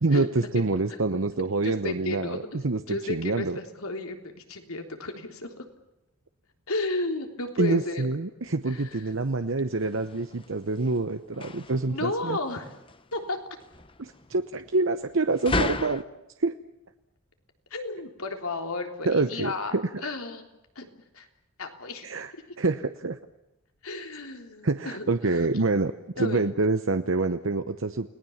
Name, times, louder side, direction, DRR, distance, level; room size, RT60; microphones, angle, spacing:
voice 1, 0.0-2.4 2.6-3.6 7.6-12.4 14.0-16.0 16.4-16.5 19.1-19.8 22.0-22.3 22.6-23.2 24.6-28.1, right 3 dB, 65° right, 8 dB, 0.9 m, -26 dB
voice 2, 1.6-5.7 6.7-8.0 8.7-9.0 11.9-12.8 13.1-13.4 17.7-19.7 20.0-20.4 20.8-21.3 21.6-22.1 23.8-25.5 26.2-26.4, left 2 dB, 90° left, 4 dB, 3.6 m, -33 dB
sound 1, 8.4-16.0, left 2 dB, 25° left, 1.0 m, -36 dB
30.0 x 19.5 x 7.3 m, 0.92 s
head